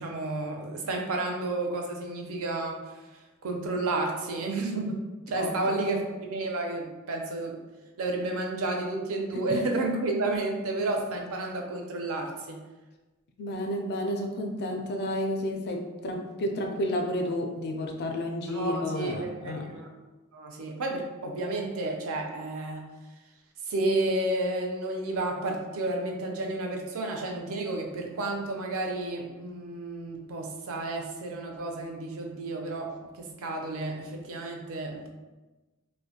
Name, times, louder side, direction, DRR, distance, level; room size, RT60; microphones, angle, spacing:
voice 1, 0.0-3.0 3.4-7.6 8.0-12.6 18.5-19.9 20.3-22.8 23.7-35.1, right 2 dB, 65° right, 2 dB, 0.4 m, -31 dB
voice 2, 13.4-19.7, left 1 dB, 50° left, 3 dB, 0.4 m, -31 dB
2.4 x 2.1 x 2.7 m, 1.2 s
head